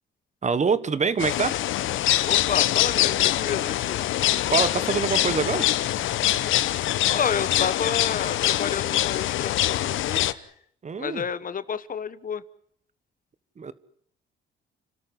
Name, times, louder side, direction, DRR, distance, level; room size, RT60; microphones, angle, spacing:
voice 1, 0.4-1.6 4.4-5.7 10.8-11.2 13.6-13.7, right 5 dB, 35° right, 16 dB, 1.4 m, -25 dB
sound 1, 1.2-10.3, left 13 dB, 80° left, 1.0 m, -24 dB
voice 2, 2.2-4.0 7.1-10.5 11.0-12.4, left 7 dB, 45° left, 16 dB, 1.2 m, -30 dB
30.0 x 13.0 x 9.9 m, 0.66 s
cardioid pair, 90°, 20 cm